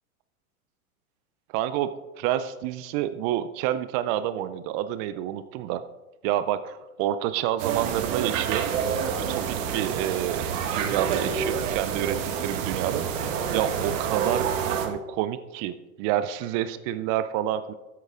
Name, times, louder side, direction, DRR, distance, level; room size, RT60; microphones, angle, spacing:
voice 1, 1.5-1.9 2.2-5.8 6.2-8.7 9.3-13.1 13.5-14.5 14.8-17.7, right 12 dB, 25° right, 12 dB, 0.3 m, -28 dB
sound 1, 7.6-14.9, right 7 dB, 60° right, 1.7 m, -28 dB
13.0 x 7.7 x 3.6 m, 1.0 s
hypercardioid pair, 100°, 44 cm